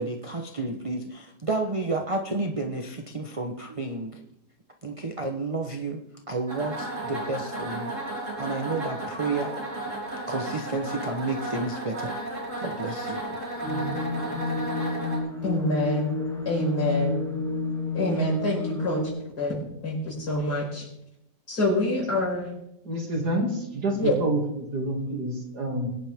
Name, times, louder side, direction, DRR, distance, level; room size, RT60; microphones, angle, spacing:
voice 1, 0.0-4.2 4.8-7.9 8.4-9.6 10.1-12.1 12.6-13.4, right 3 dB, 25° right, 4 dB, 0.8 m, -31 dB
sound 1, 6.5-15.2, right 1 dB, 45° right, 4.1 m, -34 dB
sound 2, 13.6-19.1, left 2 dB, ahead, 2.9 m, -30 dB
voice 2, 15.4-16.1 16.5-17.2 17.9-20.9 21.5-22.5 24.0-24.1, left 1 dB, 65° left, -3 dB, 5.5 m, -26 dB
voice 3, 22.8-25.9, right 1 dB, 65° right, 1 dB, 3.1 m, -28 dB
22.0 x 10.5 x 3.6 m, 0.82 s
omnidirectional pair, 1.9 m